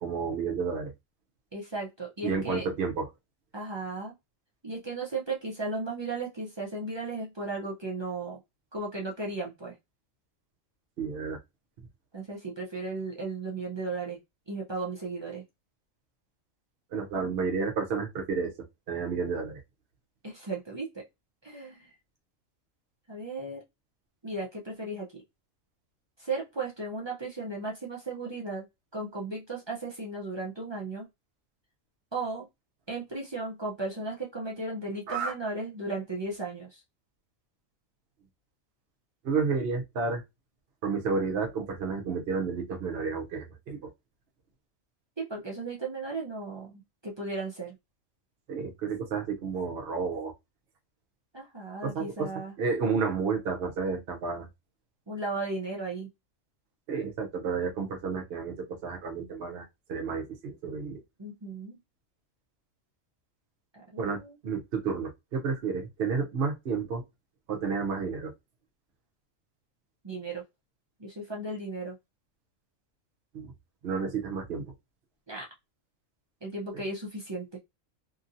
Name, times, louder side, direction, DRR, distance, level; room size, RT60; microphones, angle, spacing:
voice 1, 0.0-0.9 2.2-3.1 11.0-11.4 16.9-18.5 18.9-19.6 35.1-35.3 39.2-40.2 40.8-43.9 48.5-50.3 51.8-52.3 52.6-54.5 56.9-61.0 64.0-67.0 67.5-68.3 73.3-73.5 73.8-74.6, right 5 dB, 55° right, 0.9 m, -31 dB
voice 2, 1.5-2.7 3.5-4.2 4.6-8.4 8.7-9.7 12.1-14.2 14.5-15.4 17.1-17.4 20.2-21.0 21.4-21.9 23.1-23.6 24.2-25.1 26.2-28.7 28.9-31.1 32.1-32.5 32.9-36.8 45.2-47.8 51.3-52.5 55.1-56.1 61.2-61.8 63.7-64.4 70.0-70.4 71.0-72.0 75.3-75.5 76.4-77.5, right 3 dB, 30° right, 0.5 m, -35 dB
2.8 x 2.6 x 2.6 m
omnidirectional pair, 1.4 m